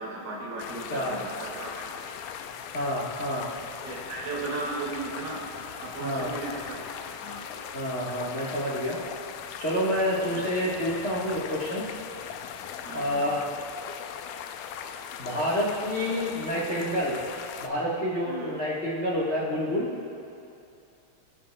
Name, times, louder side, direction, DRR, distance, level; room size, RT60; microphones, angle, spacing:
voice 1, 0.0-1.9 3.8-5.4 5.8-6.9 7.2-7.4 10.2-10.5 12.8-13.3 18.3-18.5, right 2 dB, 50° right, -5 dB, 3.0 m, -36 dB
sound 1, 0.6-17.7, left 8 dB, 90° left, 2.1 m, -39 dB
voice 2, 2.7-3.5 6.0-6.3 7.7-9.0 9.6-11.8 12.9-13.4 15.2-17.2 17.6-19.9, equal, 45° left, -6 dB, 0.8 m, -28 dB
23.5 x 8.6 x 2.2 m, 2.8 s
omnidirectional pair, 3.6 m